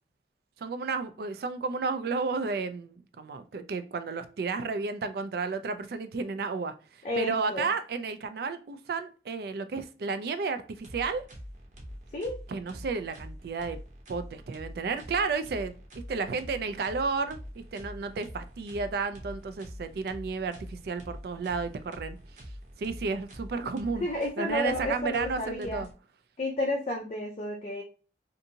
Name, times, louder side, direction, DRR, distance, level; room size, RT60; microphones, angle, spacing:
voice 1, 0.6-6.7 7.2-11.2 12.5-13.8 14.1-15.7 16.1-22.2 22.8-24.1 24.4-25.9, right 4 dB, 55° right, 10 dB, 0.3 m, -32 dB
voice 2, 7.0-7.7 12.1-12.4 24.0-25.8 26.4-27.8, left 1 dB, 35° left, 0 dB, 0.4 m, -31 dB
sound 1, 10.8-25.9, equal, 40° right, 0.7 m, -45 dB
2.6 x 2.6 x 2.7 m, 0.36 s
head